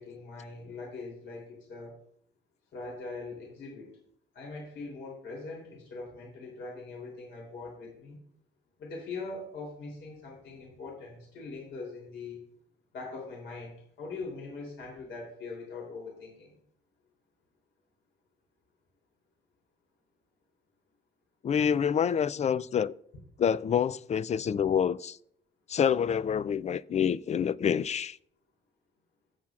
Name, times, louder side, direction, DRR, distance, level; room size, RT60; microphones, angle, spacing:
voice 1, 0.0-2.0 2.7-3.9 4.3-8.2 8.8-12.4 12.9-16.5, left 3 dB, 70° left, 3.2 m, -42 dB
voice 2, 21.4-22.9 23.4-25.2 25.7-28.2, left 8 dB, 35° left, 0.3 m, -27 dB
16.0 x 7.4 x 2.4 m
cardioid pair, 90°, 20 cm